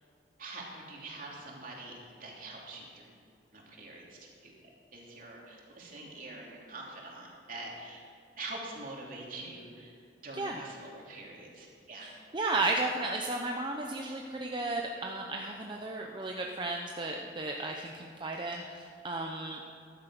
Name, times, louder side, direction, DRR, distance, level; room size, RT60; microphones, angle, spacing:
voice 1, 0.4-3.1 3.5-4.5 4.9-8.0 8.4-9.9 10.2-12.1, right 2 dB, 50° right, -2 dB, 3.0 m, -45 dB
voice 2, 10.3-10.7 12.0-19.6, right 2 dB, 30° right, 1 dB, 0.8 m, -34 dB
14.0 x 11.5 x 6.0 m, 2.4 s
head